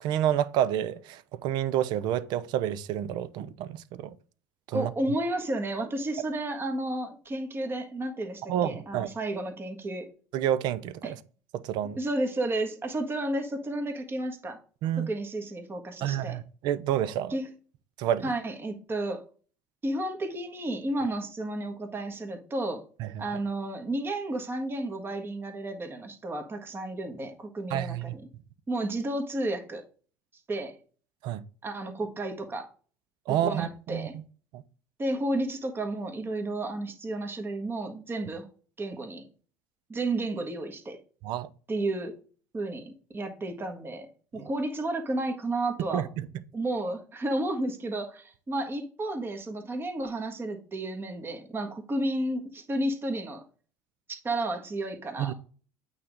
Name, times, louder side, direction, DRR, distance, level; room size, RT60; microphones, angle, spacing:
voice 1, 0.0-4.1 4.7-4.9 8.5-9.1 10.3-11.2 11.5-12.0 14.8-15.1 16.0-17.4 18.0-18.3 23.0-23.3 27.7-28.2 31.2-31.4 33.3-34.2 34.5-34.6 41.2-41.5 45.9-46.1 55.2-55.3, right 11 dB, 55° right, 0.6 m, -29 dB
voice 2, 4.7-10.1 11.0-11.1 12.0-14.6 15.0-16.4 17.3-17.5 18.2-19.2 19.8-22.8 23.2-28.2 28.7-29.8 30.5-30.8 31.6-32.7 33.4-34.1 35.0-38.4 38.8-39.2 39.9-41.0 41.7-42.1 42.5-44.1 44.3-46.1 46.5-53.4 54.2-55.3, right 1 dB, 25° right, 1.5 m, -32 dB
8.6 x 4.1 x 3.6 m
hypercardioid pair, 65°, 9 cm